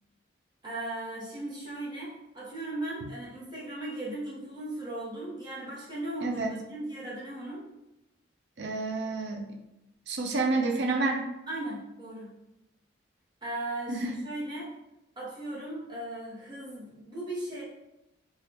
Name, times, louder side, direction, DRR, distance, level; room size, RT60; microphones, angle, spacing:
voice 1, 0.6-7.6 11.5-12.3 13.4-14.7 15.2-17.6, right 1 dB, 20° right, -7 dB, 0.9 m, -37 dB
voice 2, 6.2-6.5 8.6-9.4 10.1-11.2 13.9-14.2, right 3 dB, 60° right, 2 dB, 0.5 m, -29 dB
3.3 x 2.3 x 2.8 m, 0.91 s
head